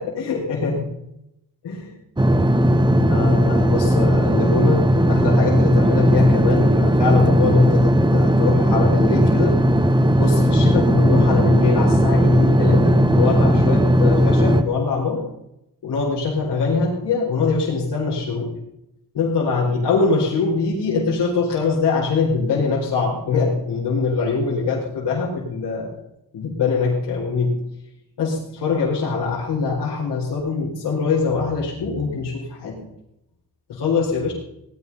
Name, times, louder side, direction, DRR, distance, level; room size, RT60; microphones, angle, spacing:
voice 1, 0.1-0.9 1.6-1.9 2.9-9.6 10.2-15.2 15.8-18.5 19.1-25.9 26.3-27.6 28.2-32.8 33.7-34.3, left 4 dB, 75° left, -5 dB, 4.7 m, -23 dB
sound 1, 2.2-14.6, equal, 10° right, 1.3 m, -17 dB
18.5 x 10.5 x 5.6 m, 0.81 s
cardioid pair, 80°, 40 cm